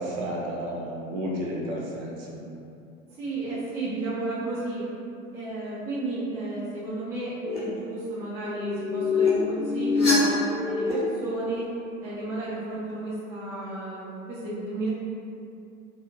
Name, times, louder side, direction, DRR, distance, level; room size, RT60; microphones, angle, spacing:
voice 1, 0.0-2.5, equal, 45° right, -3 dB, 0.6 m, -32 dB
voice 2, 3.1-4.9 5.3-11.7 12.0-14.9, right 2 dB, 5° right, -10 dB, 0.4 m, -32 dB
sound 1, 7.4-7.6 8.5-10.9, left 4 dB, 15° left, 0.9 m, -25 dB
2.4 x 2.3 x 3.1 m, 2.6 s
figure-of-eight pair, 80°, 41 cm